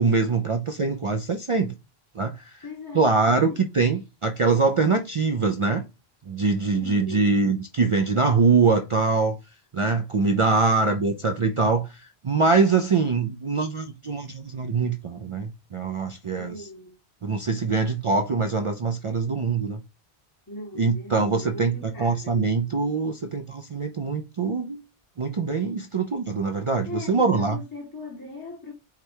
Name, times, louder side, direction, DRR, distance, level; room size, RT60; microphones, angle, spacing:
voice 1, 0.0-1.7 2.2-2.5 2.9-5.8 6.3-9.4 9.7-16.7 17.2-19.8 20.8-24.8 25.2-27.6, right 4 dB, 50° right, 0.3 m, -23 dB
voice 2, 2.6-3.6 6.7-7.3 16.3-17.0 20.5-22.5 26.7-28.7, left 2 dB, 20° left, 0.8 m, -39 dB
4.8 x 2.2 x 4.3 m
omnidirectional pair, 1.1 m